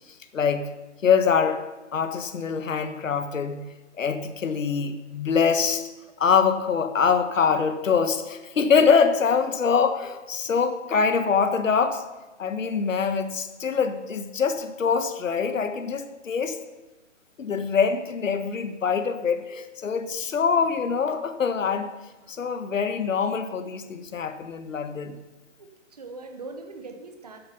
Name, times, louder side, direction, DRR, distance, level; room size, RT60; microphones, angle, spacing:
voice 1, 0.3-0.7 1.0-1.6 1.9-3.6 4.0-5.9 6.2-12.0 12.4-16.6 17.4-21.9 22.3-25.2, left 6 dB, 80° left, 10 dB, 1.4 m, -24 dB
voice 2, 25.6-27.4, right 3 dB, 30° right, 6 dB, 1.0 m, -42 dB
13.5 x 7.5 x 5.5 m, 1.1 s
hypercardioid pair, 180°, 38 cm